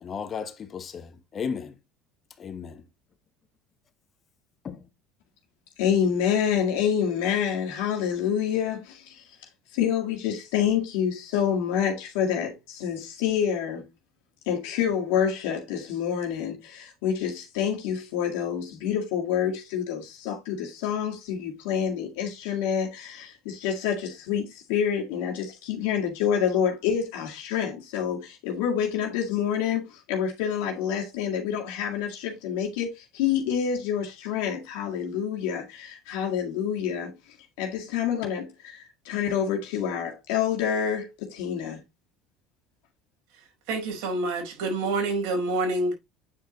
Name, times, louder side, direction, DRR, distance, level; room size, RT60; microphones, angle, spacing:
voice 1, 0.0-1.8 2.4-2.8 4.6-4.9, left 6 dB, 35° left, 1.1 m, -35 dB
voice 2, 5.8-9.2 9.7-13.9 14.5-37.1 37.6-41.8, left 8 dB, 80° left, 1.9 m, -27 dB
voice 3, 43.7-45.9, right 2 dB, 80° right, 4.8 m, -27 dB
8.7 x 4.9 x 3.0 m
supercardioid pair, 105°, 0 cm